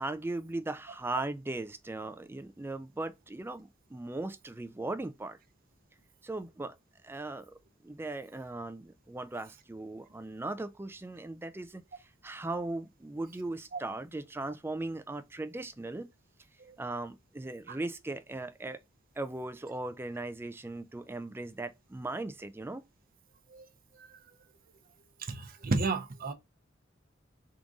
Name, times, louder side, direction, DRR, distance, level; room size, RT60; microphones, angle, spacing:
voice 1, 0.0-5.4 6.2-6.7 7.0-16.1 16.8-18.8 19.2-22.8, right 2 dB, 10° right, 0.4 m, -38 dB
voice 2, 25.3-26.3, right 3 dB, 50° right, 0.7 m, -31 dB
3.7 x 2.6 x 4.6 m
head